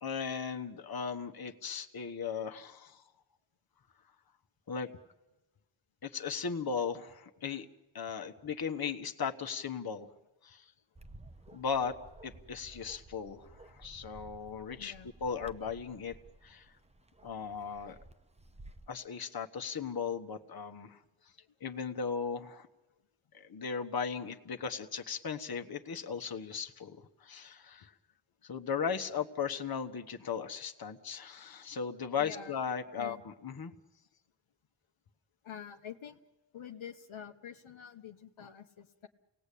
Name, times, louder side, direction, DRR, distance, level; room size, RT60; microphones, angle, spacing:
voice 1, 0.0-3.0 4.7-4.9 6.0-7.6 7.9-10.1 10.4-10.7 11.5-11.9 12.2-14.9 15.2-16.2 16.4-16.7 17.2-18.0 18.9-21.3 21.6-22.7 23.3-27.9 28.4-33.7, left 6 dB, 45° left, 6 dB, 1.3 m, -37 dB
Bark, 11.0-18.9, right 2 dB, 15° right, 0.8 m, -55 dB
voice 2, 14.8-15.1 17.2-17.3 20.9-21.0 21.4-21.6 27.8-28.0 32.2-32.6 32.9-33.2 35.4-36.2 36.5-39.1, left 8 dB, 70° left, 5 dB, 1.2 m, -47 dB
29.5 x 19.0 x 8.5 m, 1.1 s
wide cardioid pair, 110°, 49 cm